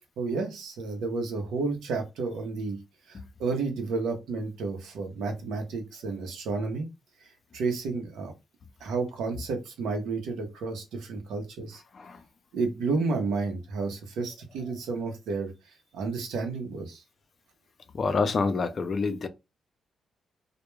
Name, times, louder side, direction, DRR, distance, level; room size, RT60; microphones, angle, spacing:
voice 1, 0.2-2.8 3.1-6.9 7.5-8.3 8.8-11.8 12.5-15.5 15.9-17.0, right 4 dB, 90° right, 0.7 m, -31 dB
voice 2, 17.9-19.3, left 4 dB, 50° left, 0.4 m, -27 dB
2.2 x 2.1 x 3.0 m
cardioid pair, 75°, 0 cm